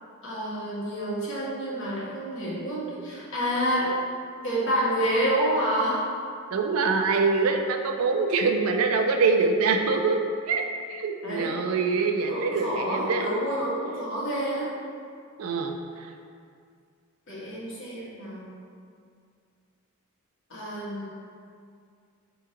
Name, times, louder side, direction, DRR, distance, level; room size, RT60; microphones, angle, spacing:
voice 1, 0.2-3.9 4.4-6.0 11.2-11.5 12.3-14.7 17.3-18.5 20.5-21.1, equal, 55° left, -7 dB, 1.2 m, -28 dB
voice 2, 6.5-10.6 10.9-13.3 15.4-16.1, right 4 dB, 70° right, 4 dB, 0.4 m, -24 dB
3.6 x 3.0 x 4.8 m, 2.3 s
head